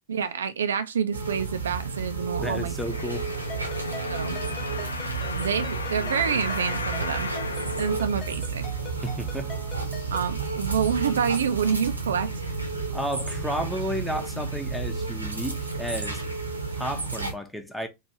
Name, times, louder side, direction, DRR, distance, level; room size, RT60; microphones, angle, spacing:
voice 1, 0.1-2.7 4.1-4.4 5.3-7.3 7.8-8.6 10.1-12.5, right 7 dB, 65° right, 0.3 m, -27 dB
sound 1, 1.1-17.3, right 4 dB, 80° right, 0.8 m, -32 dB
voice 2, 2.4-3.3 9.0-9.6 12.9-16.2 16.7-17.9, equal, ahead, 0.6 m, -32 dB
sound 2, 2.8-8.7 9.3-9.4, left 3 dB, 75° left, 0.4 m, -35 dB
Ringtone, 3.5-10.4, left 3 dB, 25° left, 1.0 m, -44 dB
3.1 x 2.5 x 2.9 m
figure-of-eight pair, 90°, 0 cm